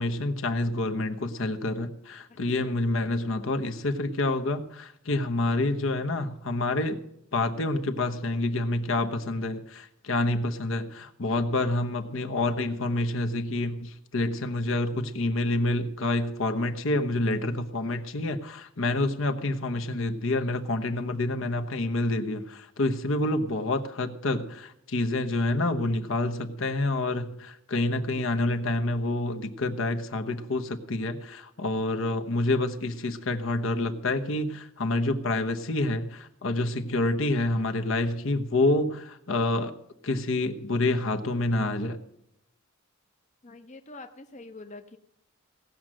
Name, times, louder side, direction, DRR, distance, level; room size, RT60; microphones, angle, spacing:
voice 1, 0.0-7.0 7.3-39.7 40.0-42.0, left 2 dB, 70° left, 7 dB, 1.0 m, -28 dB
voice 2, 36.8-37.3 43.4-45.0, left 2 dB, 35° left, 6 dB, 0.7 m, -46 dB
17.5 x 6.2 x 7.6 m, 0.76 s
head